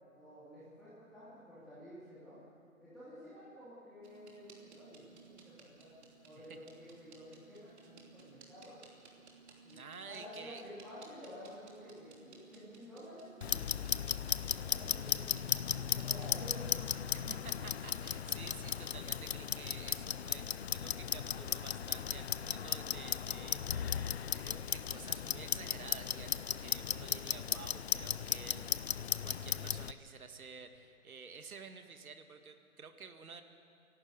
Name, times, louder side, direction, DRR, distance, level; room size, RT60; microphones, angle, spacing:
voice 1, 0.1-2.4 2.8-5.9 6.2-8.8 9.6-13.7 14.4-15.2 15.8-16.8, equal, ahead, -14 dB, 3.0 m, -51 dB
sound 1, 4.0-16.4, right 4 dB, 50° right, 3.1 m, -59 dB
voice 2, 9.7-10.6 17.1-23.8 24.3-28.9 29.2-33.4, right 5 dB, 80° right, 7 dB, 2.0 m, -51 dB
Clock, 13.4-29.9, left 8 dB, 50° left, 0.5 m, -36 dB
29.0 x 12.0 x 8.1 m, 2.4 s
hypercardioid pair, 165°, 42 cm